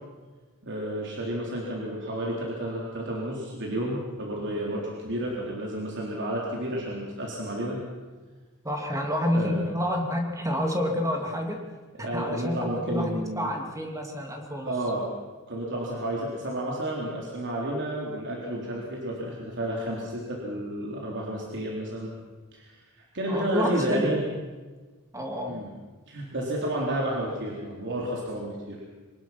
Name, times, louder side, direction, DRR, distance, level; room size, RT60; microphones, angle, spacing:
voice 1, 0.6-7.8 9.3-9.6 12.0-13.5 14.7-15.1 15.5-22.1 22.5-22.7 23.1-24.2 25.5-25.7 26.1-28.8, right 1 dB, 55° right, -3 dB, 3.9 m, -31 dB
voice 2, 8.6-11.6 12.0-14.7 23.3-24.4 25.1-25.6, equal, 15° right, 3 dB, 2.8 m, -29 dB
24.5 x 19.5 x 6.1 m, 1.3 s
head